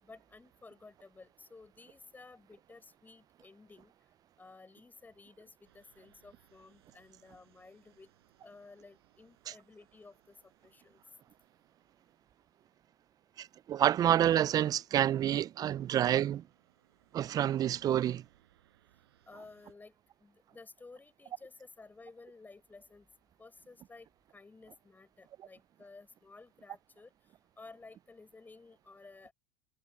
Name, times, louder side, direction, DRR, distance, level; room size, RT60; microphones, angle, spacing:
voice 1, 0.0-3.9 4.4-8.1 8.4-10.4 10.6-11.0 19.3-19.9 20.2-23.1 23.4-24.1 24.3-27.1 27.6-29.3, left 3 dB, 15° left, 6.4 m, -54 dB
sound 1, 5.6-14.0 14.7-14.9 15.4-19.7, right 13 dB, 85° right, 5.7 m, -71 dB
voice 2, 13.4-16.4 17.1-18.2, right 11 dB, 30° right, 0.3 m, -28 dB
hypercardioid pair, 100°, 13 cm